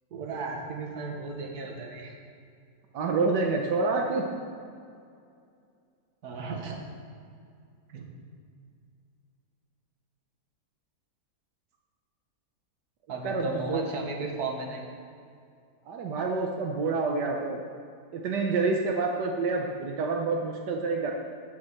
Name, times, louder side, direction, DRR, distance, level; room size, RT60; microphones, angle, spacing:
voice 1, 0.1-2.2 6.2-6.8 7.9-8.1 13.1-14.8, right 3 dB, 65° right, 1 dB, 1.8 m, -35 dB
voice 2, 2.9-4.2 13.2-13.9 15.9-17.6 18.1-21.1, right 3 dB, 85° right, 1 dB, 1.5 m, -28 dB
8.7 x 7.6 x 7.5 m, 2.4 s
omnidirectional pair, 1.8 m